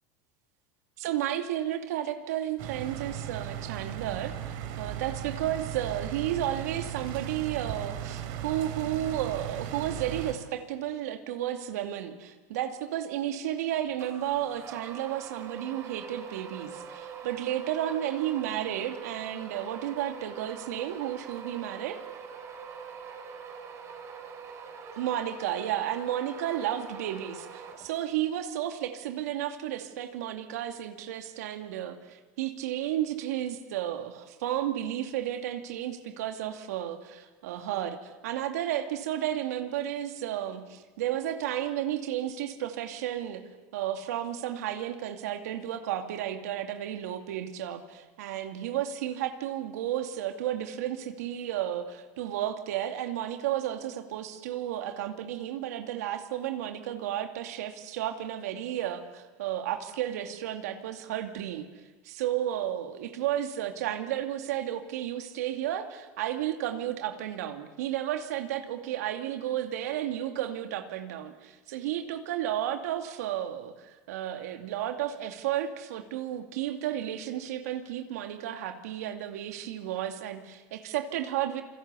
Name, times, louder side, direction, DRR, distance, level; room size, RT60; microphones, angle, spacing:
voice 1, 1.0-22.0 25.0-43.4 43.7-61.7 62.0-81.6, right 11 dB, 90° right, 6 dB, 2.5 m, -32 dB
sound 1, 2.6-10.3, right 10 dB, 60° right, 3.9 m, -37 dB
sound 2, 14.0-28.3, right 6 dB, 35° right, 4.4 m, -44 dB
28.0 x 23.5 x 8.4 m, 1.2 s
supercardioid pair, 140°, 8 cm